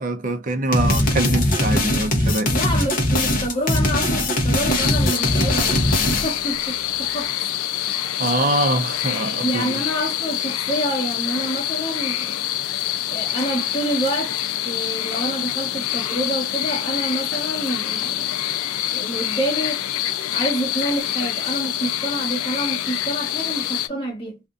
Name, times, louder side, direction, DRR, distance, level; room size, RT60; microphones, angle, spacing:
voice 1, 0.0-2.6 8.2-9.8, right 2 dB, 40° right, 0.5 m, -24 dB
sound 1, 0.7-6.5, left 1 dB, 40° left, 0.7 m, -20 dB
voice 2, 2.5-5.9 6.2-7.4 9.4-12.5 13.1-14.4 14.6-18.3 18.9-19.8 20.3-24.4, right 1 dB, 25° left, 1.1 m, -27 dB
sound 2, 4.7-23.9, left 12 dB, 85° left, 0.4 m, -26 dB
2.5 x 2.5 x 2.3 m
head